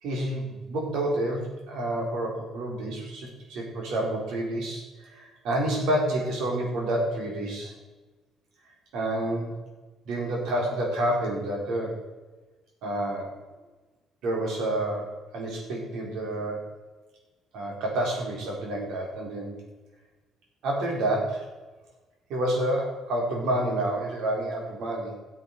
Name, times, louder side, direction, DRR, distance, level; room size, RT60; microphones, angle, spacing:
voice 1, 0.0-7.7 8.9-9.5 10.1-11.9 12.8-13.3 14.2-15.1 15.3-16.6 17.5-19.5 20.6-21.4 22.3-25.1, right 1 dB, 80° right, -1 dB, 4.1 m, -29 dB
14.0 x 7.9 x 4.8 m, 1.2 s
cardioid pair, 130°, 0 cm